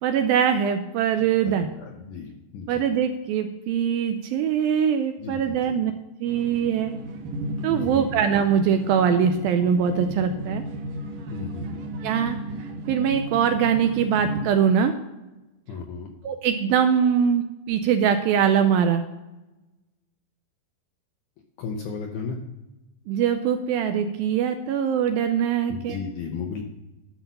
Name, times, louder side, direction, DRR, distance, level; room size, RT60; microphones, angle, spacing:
voice 1, 0.0-1.7 2.7-5.9 6.2-6.9 7.6-10.6 12.0-14.9 16.2-19.0 23.1-26.0, right 8 dB, 80° right, 7 dB, 2.1 m, -22 dB
voice 2, 1.2-2.8 5.2-5.8 7.7-8.0 11.3-11.8 15.7-16.1 21.6-22.4 25.7-26.6, left 5 dB, 75° left, 2 dB, 1.9 m, -35 dB
sound 1, 6.3-14.4, right 1 dB, 65° right, 2.3 m, -34 dB
12.0 x 5.7 x 5.4 m, 1.0 s
omnidirectional pair, 4.6 m